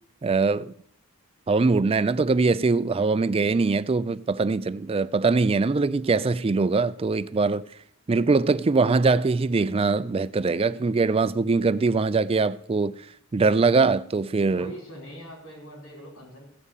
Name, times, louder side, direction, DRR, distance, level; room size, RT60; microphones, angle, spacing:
voice 1, 0.2-0.7 1.5-7.6 8.1-12.9 13.3-14.7, right 4 dB, 25° right, 0.4 m, -22 dB
voice 2, 14.5-16.4, equal, 75° left, 4.9 m, -42 dB
16.0 x 5.4 x 8.2 m
head